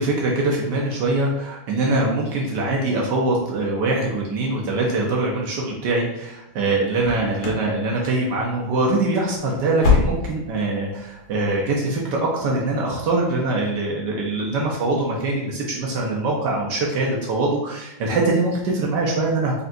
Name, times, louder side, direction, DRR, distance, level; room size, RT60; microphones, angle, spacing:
voice 1, 0.0-19.6, right 2 dB, 70° right, -2 dB, 1.1 m, -23 dB
sound 1, 7.0-7.7 8.0-8.4 8.7-8.9 9.3-10.6 10.9-11.0 11.5-11.6, left 5 dB, 65° left, 0.8 m, -23 dB
3.9 x 3.3 x 2.5 m, 0.91 s
omnidirectional pair, 2.3 m